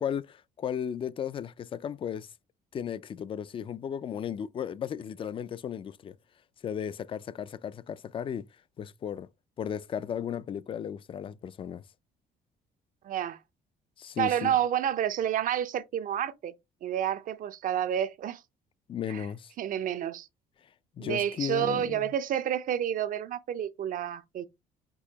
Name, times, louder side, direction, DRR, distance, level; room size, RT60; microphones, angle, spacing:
voice 1, 0.0-2.3 2.7-6.2 6.6-8.5 8.8-9.3 9.6-11.8 14.0-14.6 18.9-19.5 21.0-22.1, left 8 dB, 30° left, 0.3 m, -35 dB
voice 2, 13.0-13.4 14.2-16.5 16.8-18.4 19.1-19.3 19.6-20.3 21.0-24.5, right 10 dB, 55° right, 0.6 m, -29 dB
6.2 x 2.8 x 2.8 m
cardioid pair, 110°, 17 cm